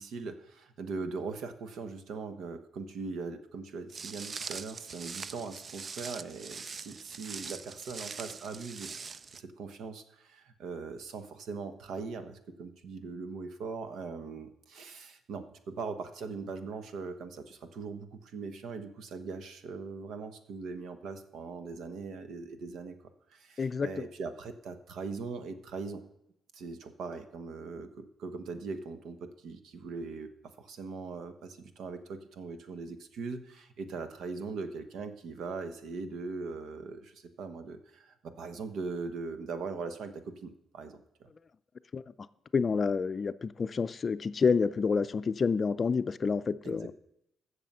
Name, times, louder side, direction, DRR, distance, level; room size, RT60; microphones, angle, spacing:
voice 1, 0.0-23.0 23.3-26.0 26.5-30.3 30.6-41.3 46.6-46.9, right 4 dB, 75° right, 1.3 m, -40 dB
Walk footsteps, 3.9-9.4, right 5 dB, 40° right, 0.4 m, -42 dB
voice 2, 23.6-24.0 41.9-42.0 42.5-46.9, left 5 dB, 40° left, 0.5 m, -28 dB
15.0 x 6.7 x 5.5 m
cardioid pair, 90°, 0 cm